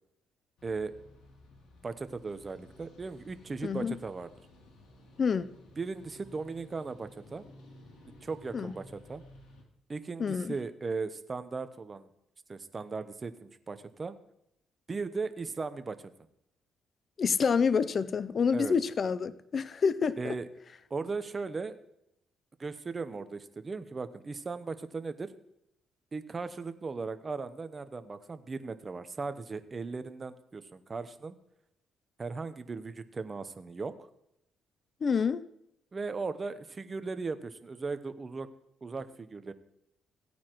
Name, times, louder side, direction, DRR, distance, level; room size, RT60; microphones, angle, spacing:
sound 1, 0.6-9.6, left 1 dB, 85° left, 3.0 m, -55 dB
voice 1, 0.6-0.9 1.8-4.3 5.8-7.5 8.1-9.2 9.9-12.1 12.5-14.2 14.9-16.1 18.5-18.7 20.2-20.5 20.9-21.8 22.6-25.3 26.1-31.4 32.2-34.0 35.9-38.5 38.8-39.5, right 4 dB, 30° right, 0.8 m, -37 dB
voice 2, 3.6-3.9 5.2-5.5 8.5-8.7 10.2-10.6 17.2-20.3 35.0-35.5, left 6 dB, 45° left, 0.5 m, -28 dB
16.5 x 9.4 x 3.1 m
cardioid pair, 90°, 0 cm